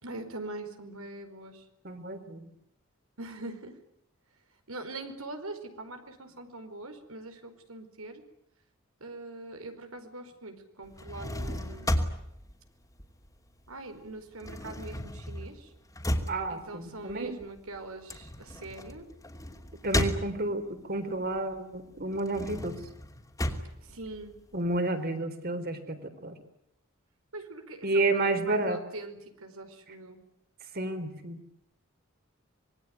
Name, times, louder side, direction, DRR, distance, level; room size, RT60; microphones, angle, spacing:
voice 1, 0.0-1.7 3.2-3.8 4.7-8.2 9.0-12.0 13.7-15.7 16.5-19.1 23.8-24.4 27.3-30.2, right 2 dB, 85° right, 7 dB, 4.8 m, -43 dB
voice 2, 1.8-2.5 16.3-17.3 19.8-22.8 24.5-26.4 27.8-28.8 30.7-31.4, right 2 dB, 45° right, 8 dB, 4.0 m, -31 dB
sound 1, 10.8-13.7 14.0-20.8 21.2-24.8, left 1 dB, 15° left, 2.8 m, -34 dB
26.0 x 21.5 x 9.5 m, 0.77 s
head